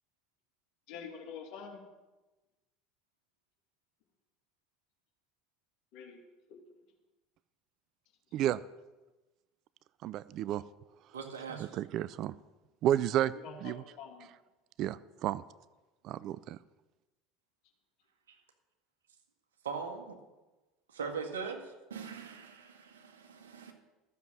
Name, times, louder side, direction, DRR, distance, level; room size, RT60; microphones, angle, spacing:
voice 1, 0.9-1.9 5.9-6.2 6.5-6.8 13.3-14.3, left 6 dB, 60° left, 2 dB, 2.6 m, -47 dB
voice 2, 10.0-10.6 11.6-12.3 12.8-13.3 13.6-13.8 14.8-15.4 16.0-16.6, right 12 dB, 50° right, 18 dB, 0.4 m, -31 dB
voice 3, 11.1-11.7 19.6-20.2 20.9-23.7, right 5 dB, 80° right, 2 dB, 1.8 m, -41 dB
13.5 x 7.1 x 7.6 m, 1.1 s
hypercardioid pair, 70°, 0 cm